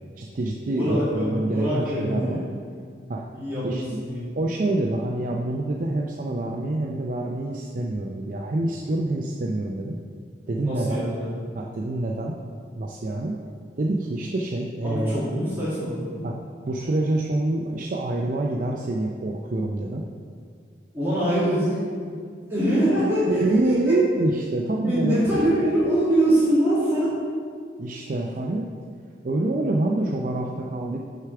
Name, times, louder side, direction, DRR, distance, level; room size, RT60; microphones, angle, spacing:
voice 1, 0.2-2.4 3.1-3.2 3.6-3.8 4.4-10.0 10.5-11.0 11.6-12.3 12.8-13.3 13.8-15.2 16.2-16.3 16.7-20.0 23.3-25.4 27.8-28.7 29.2-31.0, right 2 dB, 50° right, -1 dB, 0.4 m, -26 dB
voice 2, 0.7-2.4 3.3-4.2 10.6-11.3 14.8-16.2 20.9-22.1 22.5-23.9 24.8-27.1, right 1 dB, 15° right, -12 dB, 2.0 m, -24 dB
6.5 x 4.8 x 5.8 m, 2.1 s
head